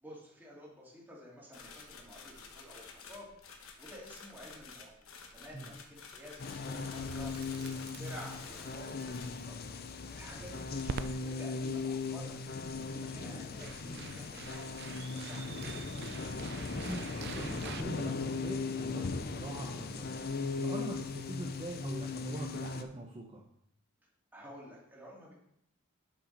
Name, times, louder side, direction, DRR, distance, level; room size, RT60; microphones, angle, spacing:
voice 1, 0.0-3.3 3.8-4.9 5.3-6.4 6.6-12.4 12.8-16.1 24.3-25.3, equal, 10° right, -5 dB, 2.5 m, -51 dB
sound 1, 1.5-8.8 9.1-9.4, left 5 dB, 80° left, 1.1 m, -51 dB
sound 2, 6.4-22.8, left 4 dB, 50° left, 0.6 m, -38 dB
Crackle, 7.0-17.8, right 6 dB, 55° right, 0.4 m, -48 dB
voice 2, 16.7-20.2 20.6-23.4, right 1 dB, 25° right, -1 dB, 0.8 m, -43 dB
7.2 x 5.5 x 5.3 m, 0.76 s
head